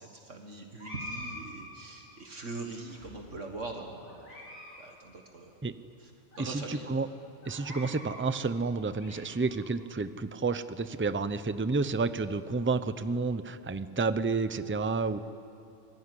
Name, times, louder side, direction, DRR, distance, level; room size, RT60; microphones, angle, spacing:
voice 1, 0.0-4.3 4.8-5.5 6.0-6.1 6.4-6.9, right 3 dB, 65° right, 2 dB, 2.0 m, -42 dB
sound 1, 0.8-2.2 2.9-3.6 4.0-4.8 5.0-5.1 5.8-5.9 6.3-6.4 7.4-8.2 8.7-9.6, left 1 dB, 85° left, 7.3 m, -45 dB
voice 2, 6.4-7.1 7.5-15.2, right 4 dB, 15° right, 12 dB, 0.5 m, -30 dB
26.0 x 21.5 x 9.9 m, 2.7 s
omnidirectional pair, 1.4 m